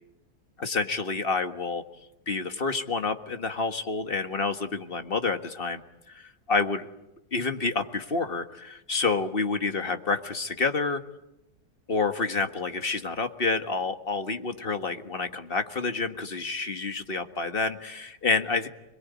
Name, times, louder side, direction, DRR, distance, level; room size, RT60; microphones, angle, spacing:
voice 1, 0.6-1.8 2.3-5.8 6.1-6.9 7.3-11.0 11.9-18.7, left 4 dB, 35° left, 7 dB, 1.8 m, -28 dB
26.5 x 22.0 x 9.5 m, 0.89 s
omnidirectional pair, 1.7 m